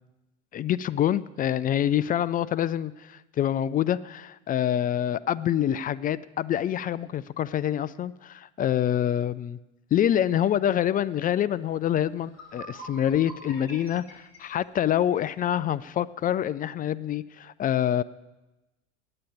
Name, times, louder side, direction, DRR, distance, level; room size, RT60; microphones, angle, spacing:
voice 1, 0.5-9.6 9.9-18.0, left 10 dB, 25° left, 18 dB, 0.3 m, -26 dB
sound 1, 11.8-11.9 12.2-15.3, equal, 50° left, 5.3 m, -45 dB
9.0 x 8.7 x 8.6 m, 1.0 s
hypercardioid pair, 80°, 34 cm